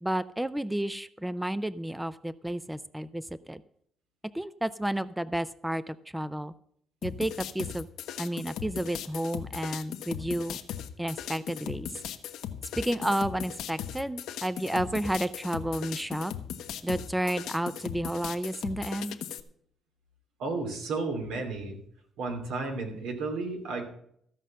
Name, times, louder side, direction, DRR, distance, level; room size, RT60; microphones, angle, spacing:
voice 1, 0.0-3.6 4.3-6.5 7.0-7.9 8.2-10.6 11.0-11.9 12.8-16.3 16.8-19.2, right 1 dB, 5° right, 16 dB, 0.5 m, -31 dB
sound 1, 7.0-19.4, left 10 dB, 85° left, 1.0 m, -38 dB
voice 2, 20.4-21.8 22.2-23.8, right 3 dB, 90° right, 3 dB, 2.9 m, -33 dB
15.0 x 5.4 x 7.4 m, 0.67 s
cardioid pair, 90°, 0 cm